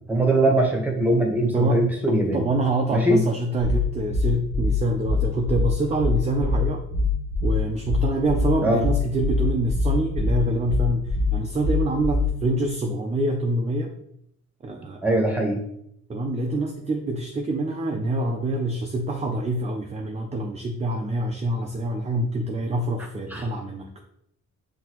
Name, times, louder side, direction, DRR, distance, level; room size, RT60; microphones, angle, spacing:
voice 1, 0.1-2.4 2.9-3.2 8.6-8.8 15.0-15.6 23.3-23.4, right 1 dB, 5° right, 1 dB, 1.1 m, -21 dB
voice 2, 2.1-6.8 7.4-13.9 14.6-15.0 16.1-23.9, right 1 dB, 20° right, 3 dB, 0.5 m, -26 dB
sound 1, 3.6-12.5, left 3 dB, 80° left, 1.0 m, -23 dB
5.8 x 2.8 x 3.0 m, 0.74 s
cardioid pair, 90°, 30 cm